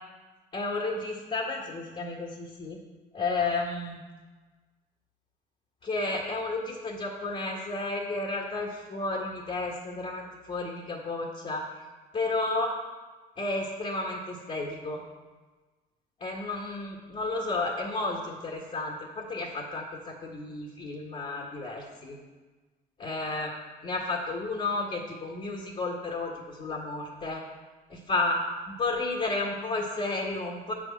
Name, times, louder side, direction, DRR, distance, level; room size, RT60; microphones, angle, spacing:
voice 1, 0.5-2.8 3.1-4.0 5.8-11.8 12.1-12.8 13.4-15.0 16.2-22.2 23.0-23.5 23.8-27.4 27.9-30.7, left 2 dB, 40° left, -2 dB, 1.7 m, -32 dB
8.7 x 6.3 x 7.3 m, 1.3 s
cardioid pair, 110°, 17 cm